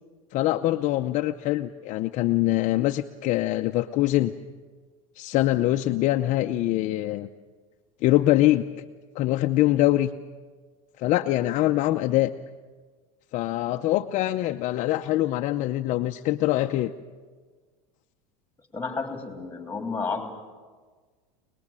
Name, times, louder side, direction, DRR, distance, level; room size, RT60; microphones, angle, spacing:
voice 1, 0.3-4.3 5.2-7.3 8.0-8.6 9.1-10.1 11.0-12.3 13.3-16.9, left 15 dB, 45° left, 6 dB, 0.7 m, -23 dB
voice 2, 18.7-20.3, left 4 dB, 10° left, 4 dB, 3.5 m, -31 dB
26.5 x 20.5 x 7.6 m, 1.5 s
supercardioid pair, 130°, 18 cm